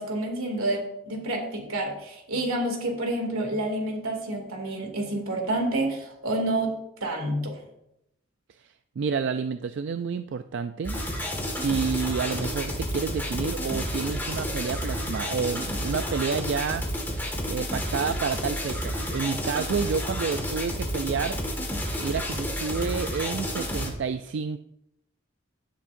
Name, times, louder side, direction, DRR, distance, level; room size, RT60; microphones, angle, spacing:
voice 1, 0.0-7.6, right 1 dB, 80° right, 2 dB, 2.4 m, -29 dB
voice 2, 8.6-11.0 11.6-16.8 17.5-21.4 22.0-24.6, right 5 dB, 55° right, 10 dB, 0.3 m, -29 dB
sound 1, 10.8-23.9, equal, 10° left, 1.7 m, -30 dB
16.0 x 7.3 x 2.6 m, 0.81 s
head